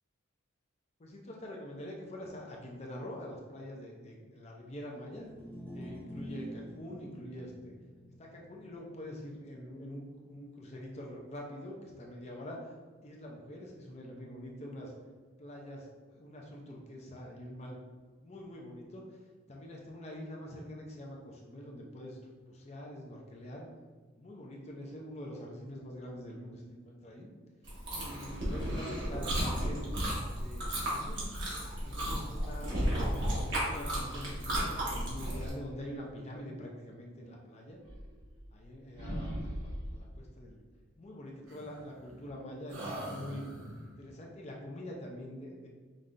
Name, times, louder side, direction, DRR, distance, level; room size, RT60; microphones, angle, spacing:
voice 1, 1.0-5.3 5.7-7.7 8.2-12.7 13.0-14.9 15.4-17.8 18.2-19.0 19.5-23.7 24.1-27.3 27.9-29.8 30.3-31.3 31.9-32.7 33.1-37.8 38.5-40.6 41.0-43.4 43.8-45.7, equal, 30° left, -1 dB, 0.5 m, -45 dB
sound 1, 5.0-11.4, equal, 10° left, 0.8 m, -49 dB
Chewing mastication, 27.6-35.5, equal, 55° right, 1.4 m, -33 dB
sound 2, 37.8-38.7 39.0-40.1 41.5-42.3 42.7-43.9, equal, 90° right, 1.0 m, -41 dB
5.2 x 3.2 x 2.5 m, 1.5 s
head